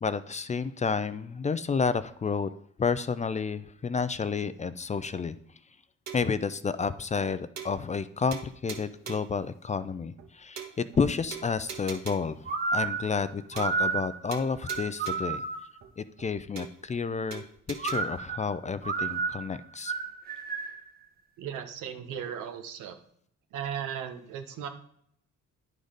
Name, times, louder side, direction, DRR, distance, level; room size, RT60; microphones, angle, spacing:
voice 1, 0.0-2.5 2.8-5.4 6.1-15.4 16.0-19.9, left 5 dB, 25° left, 14 dB, 0.4 m, -30 dB
sound 1, 6.1-6.4 6.8-6.9 7.2-7.3 7.6-8.0 8.3-9.4 9.8-9.9 10.2-10.3 10.6-11.0 11.3-12.4 12.8-12.9 13.2-13.3 13.6-14.0 14.3-15.4 15.8-15.9 16.2-16.3 16.6-17.0 17.3-18.0, right 7 dB, 65° right, 1.3 m, -42 dB
sound 2, 12.5-15.8 17.8-20.9, right 4 dB, 30° right, 1.2 m, -31 dB
voice 2, 21.4-23.0 23.5-24.7, right 8 dB, 90° right, 6 dB, 1.1 m, -36 dB
9.7 x 3.9 x 5.1 m, 0.67 s
cardioid pair, 90°, 30 cm